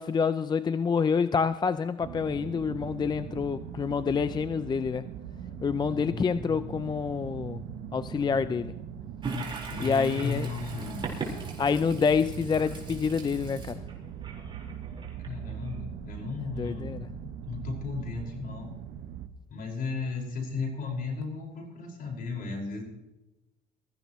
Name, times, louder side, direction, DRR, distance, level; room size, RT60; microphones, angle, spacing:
voice 1, 0.0-5.1 5.6-7.6 7.9-8.7 9.8-10.5 11.6-13.8 16.6-17.1, left 6 dB, 25° left, 13 dB, 0.5 m, -27 dB
sound 1, 2.0-19.3, right 8 dB, 75° right, 1.2 m, -41 dB
voice 2, 3.2-3.6 5.9-6.6 9.7-11.0 15.3-18.7 19.5-22.8, left 4 dB, 60° left, 1 dB, 5.3 m, -35 dB
Toilet flush, 9.2-15.8, right 3 dB, 30° right, 4.4 m, -39 dB
22.5 x 14.5 x 3.1 m, 1.0 s
cardioid pair, 110°, 17 cm